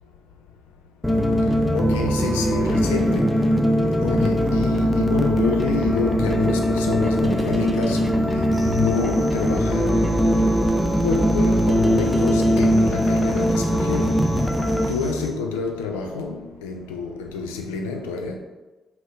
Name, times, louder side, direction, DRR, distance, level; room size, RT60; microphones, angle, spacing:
sound 1, 1.0-14.9, equal, 5° left, 0.4 m, -20 dB
voice 1, 1.7-3.3 4.0-8.2 8.6-10.1 11.0-14.2 14.9-18.4, left 4 dB, 75° left, 0.3 m, -27 dB
sound 2, 8.5-15.3, left 2 dB, 25° left, 1.0 m, -36 dB
2.8 x 2.6 x 3.3 m
figure-of-eight pair, 40°, 0 cm